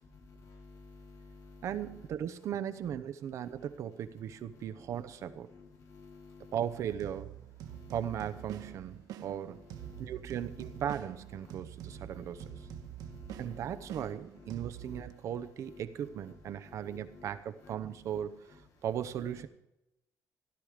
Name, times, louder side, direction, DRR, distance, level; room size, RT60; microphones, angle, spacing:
voice 1, 0.1-1.7 3.6-3.7 4.8-6.6 7.6-7.9 8.5-8.8 9.2-10.8 11.4-11.6 11.8-14.0 14.4-14.5 14.8-15.4 15.7-15.8 16.3-16.4 16.6-17.3 17.6-17.8 18.1-18.2, left 4 dB, 60° left, 1 dB, 3.6 m, -54 dB
voice 2, 1.6-5.5 6.5-7.3 7.9-9.6 10.0-12.4 13.4-19.5, right 9 dB, 55° right, 11 dB, 0.8 m, -37 dB
sound 1, 6.9-15.1, right 12 dB, 90° right, 1.0 m, -46 dB
16.5 x 12.0 x 5.0 m, 0.89 s
cardioid pair, 180°, 6 cm